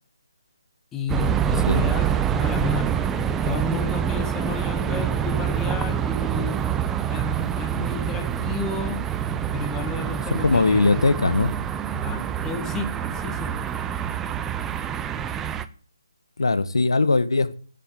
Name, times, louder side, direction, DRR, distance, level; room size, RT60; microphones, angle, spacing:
voice 1, 0.9-6.6 7.1-9.1 9.5-11.3 12.0-13.5, left 5 dB, 10° left, 1.7 m, -32 dB
sound 1, 1.1-15.6, right 9 dB, 10° right, 0.6 m, -26 dB
voice 2, 10.3-11.5 16.4-17.5, left 3 dB, 75° left, 1.6 m, -20 dB
11.0 x 8.6 x 8.0 m
figure-of-eight pair, 150°, 3 cm